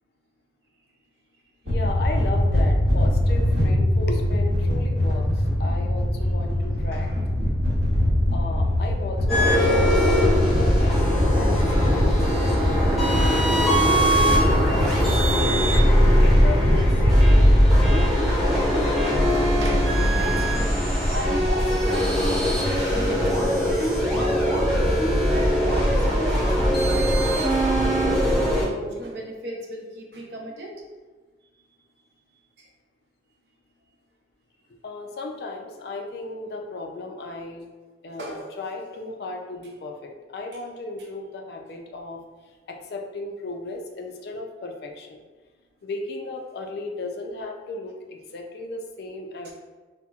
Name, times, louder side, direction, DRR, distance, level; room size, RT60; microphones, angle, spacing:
voice 1, 1.6-5.2 5.6-7.1 8.3-11.5 11.8-15.7 16.2-18.5 34.8-37.6 38.0-42.2 42.7-45.2 45.8-49.5, left 2 dB, 60° left, 3 dB, 0.4 m, -35 dB
sound 1, 1.7-18.0, left 1 dB, 85° right, 0.9 m, -22 dB
sound 2, 9.3-28.7, equal, ahead, 0.7 m, -21 dB
voice 2, 13.4-14.2 19.6-27.3 27.8-30.7 31.6-31.7 32.6-32.7 38.1-38.6 40.5-40.6 49.4-49.5, right 1 dB, 65° right, 0 dB, 0.6 m, -36 dB
4.3 x 2.0 x 2.3 m, 1.3 s
head